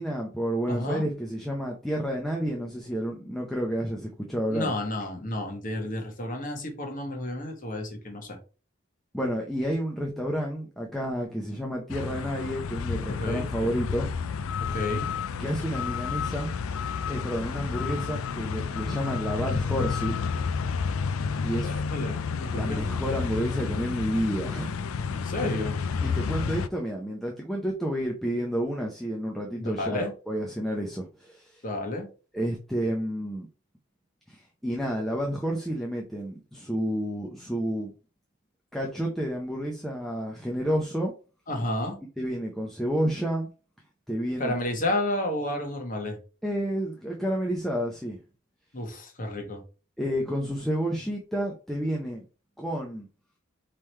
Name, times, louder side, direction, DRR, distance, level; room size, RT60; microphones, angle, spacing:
voice 1, 0.0-4.7 9.1-14.1 15.4-16.5 17.1-20.2 21.4-22.1 22.5-24.7 26.0-31.6 32.3-33.5 34.3-37.9 38.7-41.1 42.2-43.5 44.1-44.5 46.4-48.2 50.0-52.2 52.6-53.1, equal, ahead, -1 dB, 0.6 m, -30 dB
voice 2, 0.7-1.0 4.5-8.4 13.1-13.5 14.7-15.1 21.6-22.8 25.1-25.8 29.6-30.1 31.6-32.1 41.5-42.0 44.4-46.2 48.7-49.6, left 1 dB, 40° left, 3 dB, 1.3 m, -31 dB
sound 1, 11.9-26.7, left 5 dB, 85° left, 0.4 m, -30 dB
3.7 x 3.2 x 4.3 m, 0.35 s
head